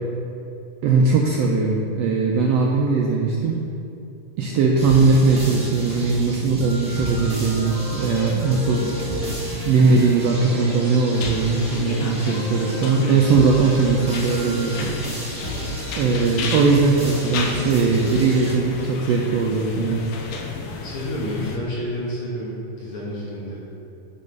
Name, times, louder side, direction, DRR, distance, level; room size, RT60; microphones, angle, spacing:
voice 1, 0.8-3.6 4.4-9.4 9.6-14.9 16.0-20.0, right 4 dB, 85° right, -1 dB, 1.4 m, -19 dB
sound 1, 4.5-6.1 6.6-11.8 12.1-16.2, left 1 dB, 35° left, 1.7 m, -34 dB
sound 2, 4.8-18.5, equal, 5° right, 0.5 m, -33 dB
sound 3, 11.1-21.6, left 4 dB, 85° left, 1.2 m, -34 dB
voice 2, 20.8-23.6, equal, 50° left, -7 dB, 2.2 m, -29 dB
9.5 x 4.1 x 5.3 m, 2.7 s
omnidirectional pair, 3.5 m